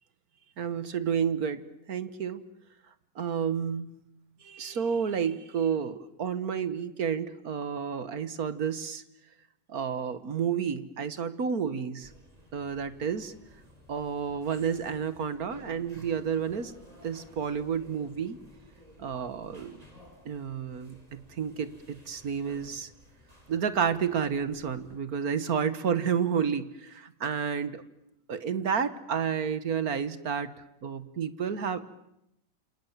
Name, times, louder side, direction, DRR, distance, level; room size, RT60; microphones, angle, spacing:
voice 1, 0.6-1.6 1.9-2.4 3.2-3.9 4.4-9.0 9.7-12.1 12.5-13.3 13.9-16.7 17.0-18.4 19.0-19.8 20.3-22.9 23.5-27.8 28.3-30.5 30.8-31.8, right 7 dB, 55° right, 13 dB, 1.8 m, -30 dB
sound 1, 12.0-25.0, equal, 20° right, 5.6 m, -55 dB
28.0 x 28.0 x 7.4 m, 0.84 s
omnidirectional pair, 1.9 m